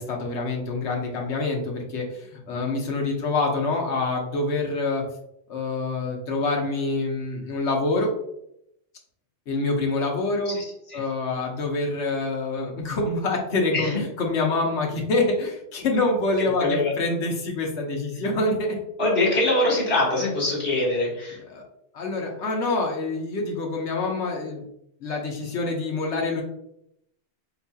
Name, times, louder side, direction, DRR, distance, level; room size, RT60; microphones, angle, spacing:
voice 1, 0.0-5.0 5.5-8.1 9.5-10.6 10.9-18.7 21.5-21.6 21.9-24.6 25.0-26.4, left 2 dB, 80° left, 0 dB, 1.1 m, -26 dB
voice 2, 10.5-11.0 13.7-14.0 16.6-16.9 19.0-21.4, left 2 dB, 60° left, -3 dB, 1.8 m, -23 dB
4.1 x 3.9 x 2.3 m, 0.76 s
omnidirectional pair, 1.2 m